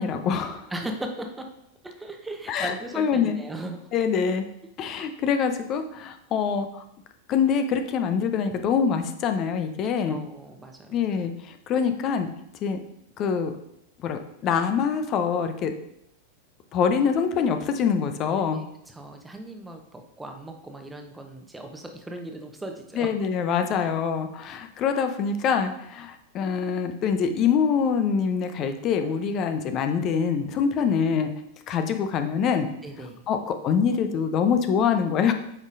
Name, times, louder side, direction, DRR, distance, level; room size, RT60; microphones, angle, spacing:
voice 1, 0.0-0.7 2.5-3.4 3.9-4.5 4.8-6.8 7.3-10.2 10.9-12.3 12.6-12.8 13.2-13.5 14.0-15.7 16.7-18.6 22.9-31.3 31.7-32.7 33.3-35.3, left 6 dB, 35° left, 8 dB, 0.6 m, -25 dB
voice 2, 0.7-1.5 1.8-3.8 5.0-5.1 10.1-10.9 18.5-23.1 32.8-33.2, right 1 dB, 10° right, 4 dB, 0.9 m, -37 dB
8.1 x 5.4 x 2.6 m, 0.76 s
figure-of-eight pair, 90°, 0 cm